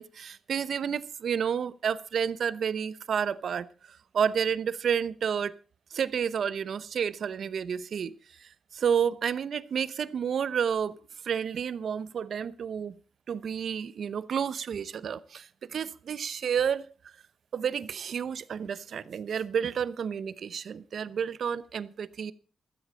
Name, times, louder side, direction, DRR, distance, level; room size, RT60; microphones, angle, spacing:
voice 1, 0.0-5.5 5.9-11.0 11.2-12.9 13.3-17.1 17.5-22.3, right 7 dB, 65° right, 0.8 m, -30 dB
15.5 x 12.5 x 4.1 m
supercardioid pair, 55°, 0 cm